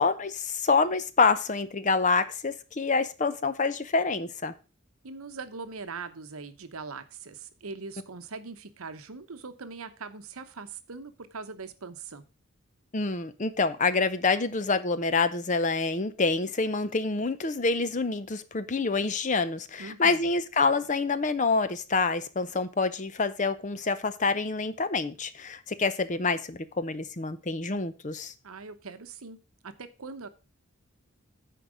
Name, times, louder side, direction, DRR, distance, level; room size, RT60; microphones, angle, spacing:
voice 1, 0.0-4.5 12.9-28.3, left 4 dB, 35° left, 0.6 m, -27 dB
voice 2, 5.0-12.2 19.8-20.3 28.4-29.4 29.6-30.3, right 4 dB, 75° right, 0.9 m, -41 dB
10.0 x 4.7 x 6.2 m
head